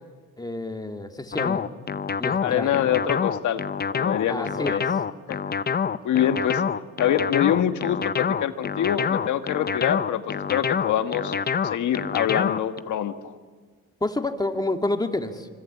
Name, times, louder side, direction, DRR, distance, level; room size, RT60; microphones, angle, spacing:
voice 1, 0.4-1.6 2.2-2.7 4.3-4.8 14.0-15.5, left 2 dB, 15° left, 5 dB, 2.2 m, -28 dB
sound 1, 1.3-12.8, left 6 dB, 30° left, 0.8 m, -26 dB
voice 2, 2.4-3.6 3.9-4.8 5.3-5.4 6.0-6.6 7.0-11.3 11.6-13.3, left 10 dB, 75° left, 8 dB, 1.7 m, -25 dB
25.5 x 24.5 x 8.6 m, 1.5 s
cardioid pair, 90°, 30 cm